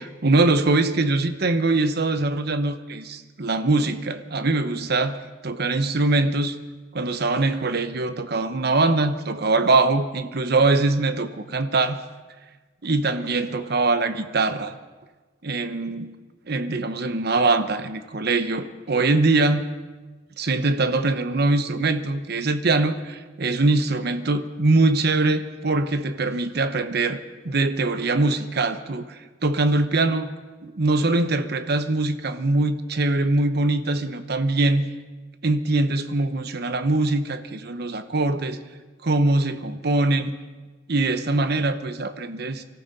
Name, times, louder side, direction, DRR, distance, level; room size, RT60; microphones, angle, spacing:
voice 1, 0.0-6.6 6.9-12.0 12.8-14.7 15.4-16.2 16.5-19.6 20.4-30.3 30.6-34.9 35.4-38.6 39.0-40.4 40.9-42.6, right 2 dB, 55° right, 10 dB, 0.9 m, -22 dB
24.5 x 14.0 x 4.1 m, 1.3 s
head